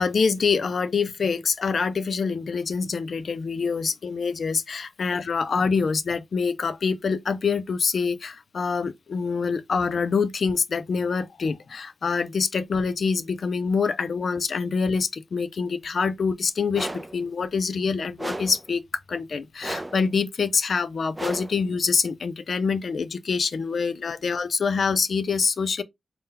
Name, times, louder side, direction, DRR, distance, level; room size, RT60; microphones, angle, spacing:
voice 1, 0.0-18.8 19.1-25.8, left 5 dB, 65° left, 0.4 m, -25 dB
sound 1, 16.7-17.2 18.2-18.7 19.6-20.1 21.2-21.6, right 1 dB, 15° right, 0.4 m, -34 dB
4.1 x 2.1 x 3.8 m
wide cardioid pair, 100°, 0 cm